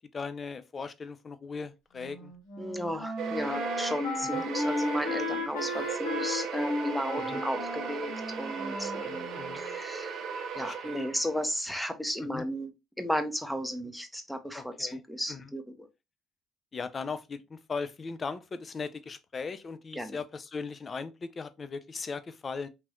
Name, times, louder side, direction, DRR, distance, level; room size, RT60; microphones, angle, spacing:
voice 1, 0.1-2.3 4.3-4.4 7.2-7.4 9.0-9.6 10.5-11.1 12.2-12.4 14.5-15.0 15.3-15.5 16.7-22.7, left 5 dB, 35° left, 0.4 m, -38 dB
Wind instrument woodwind instrument, 1.9-9.7, left 1 dB, 85° left, 1.5 m, -35 dB
voice 2, 2.6-8.1 8.4-9.3 9.5-10.2 10.6-12.7 13.0-15.9 20.0-20.2, equal, ahead, 0.7 m, -34 dB
sound 1, 3.2-11.5, right 6 dB, 65° right, 0.6 m, -37 dB
3.0 x 2.9 x 2.3 m
supercardioid pair, 70°, 0 cm